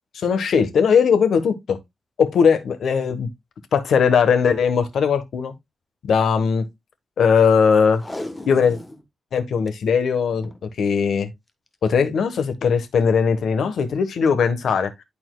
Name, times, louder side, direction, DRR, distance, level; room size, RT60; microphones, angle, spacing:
voice 1, 0.1-1.8 2.2-3.3 3.7-5.5 6.0-6.7 7.2-8.0 8.5-8.8 9.3-10.5 10.8-11.3 11.8-14.9, left 6 dB, 80° left, 1.2 m, -19 dB
Packing tape duct tape, 7.9-9.0 9.4-9.5 9.7-9.8 10.3-10.6 11.7-11.9 12.5-12.6, left 1 dB, 15° left, 1.2 m, -36 dB
11.5 x 4.3 x 2.3 m
cardioid pair, 90°, 0 cm